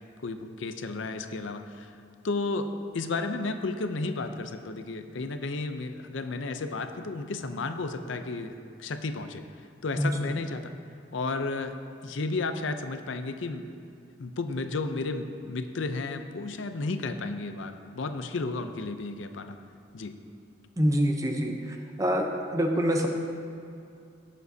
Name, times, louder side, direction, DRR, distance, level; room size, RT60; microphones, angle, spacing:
voice 1, 0.2-1.9 2.2-2.7 2.9-8.5 8.8-9.4 9.8-10.7 11.1-11.7 12.0-13.7 14.2-19.6 19.9-20.1, left 3 dB, 75° left, 8 dB, 0.6 m, -33 dB
voice 2, 20.8-21.5 22.0-23.1, equal, 15° right, 3 dB, 0.7 m, -25 dB
18.0 x 7.3 x 2.7 m, 2.4 s
head